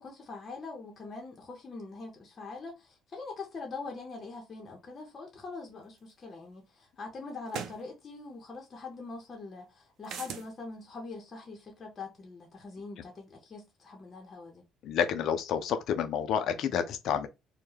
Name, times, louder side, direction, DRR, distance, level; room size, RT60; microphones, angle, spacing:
voice 1, 0.0-14.6, left 3 dB, 35° left, 0.7 m, -43 dB
sound 1, 6.1-6.2 7.5-7.8 10.0-10.5, right 7 dB, 70° right, 0.5 m, -38 dB
voice 2, 14.8-17.3, left 8 dB, 65° left, 0.4 m, -29 dB
2.2 x 2.1 x 3.1 m
supercardioid pair, 85°, 0 cm